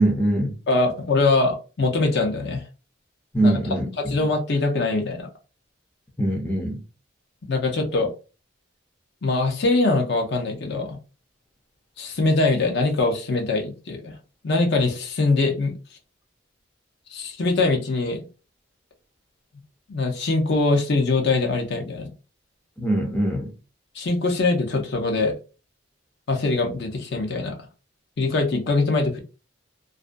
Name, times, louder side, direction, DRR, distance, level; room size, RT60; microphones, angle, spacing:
voice 1, 0.0-0.6 3.3-4.2 6.2-6.8 22.8-23.5, right 1 dB, 5° left, 0.4 m, -22 dB
voice 2, 0.7-2.6 3.4-3.6 4.0-5.3 7.5-8.1 9.2-11.0 12.0-14.2 14.4-15.8 17.1-18.3 19.9-22.1 23.9-25.4 26.3-27.6 28.2-29.2, left 3 dB, 55° left, 0.6 m, -22 dB
2.5 x 2.2 x 2.4 m
head